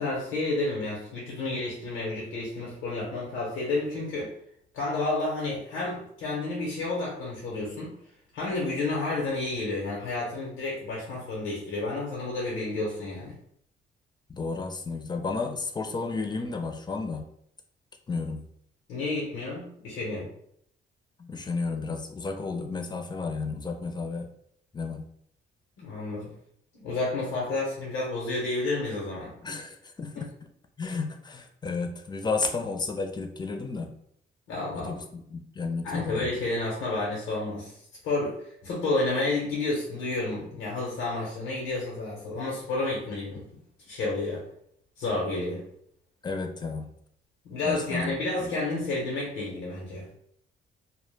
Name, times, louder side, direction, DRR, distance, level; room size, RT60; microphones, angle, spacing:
voice 1, 0.0-4.3 4.7-7.9 8.3-13.3 18.9-20.3 25.8-26.3 26.7-29.3 30.1-30.2 30.9-31.0 34.5-34.9 35.8-37.8 38.0-43.5 43.9-44.4 45.0-45.6 47.4-50.1, left 2 dB, 90° left, -4 dB, 0.7 m, -30 dB
voice 2, 14.3-17.3 18.1-18.5 21.2-24.3 24.7-25.1 29.4-30.4 30.8-33.9 34.7-36.3 46.2-46.9 47.6-48.1 48.4-48.5, left 4 dB, 20° left, 4 dB, 0.4 m, -32 dB
2.1 x 2.1 x 3.2 m, 0.69 s
cardioid pair, 90°, 20 cm